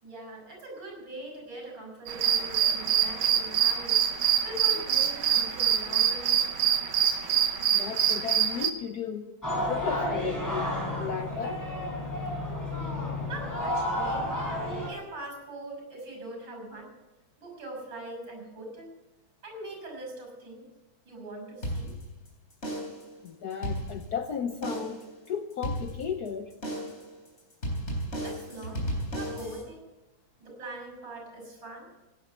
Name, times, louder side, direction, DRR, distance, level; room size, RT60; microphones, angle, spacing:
voice 1, 0.0-4.0 4.4-6.3 13.3-14.3 14.8-16.9 17.4-18.9 19.4-20.7 21.1-21.9 28.2-29.8 30.4-31.9, right 2 dB, 60° right, 2 dB, 6.9 m, -42 dB
sound 1, 2.1-8.7, right 9 dB, 75° right, 1.8 m, -25 dB
voice 2, 7.7-10.7 11.0-11.6 23.2-25.0 25.3-26.5, left 7 dB, 60° left, 7 dB, 1.1 m, -34 dB
sound 2, 9.4-14.9, left 1 dB, 10° left, 4.1 m, -31 dB
sound 3, 21.6-22.3 22.6-23.1 23.5-24.3 24.6-25.1 25.6-26.3 26.6-27.1 27.6-29.6, equal, 30° left, 3.8 m, -34 dB
16.5 x 10.5 x 6.9 m, 1.0 s
omnidirectional pair, 2.3 m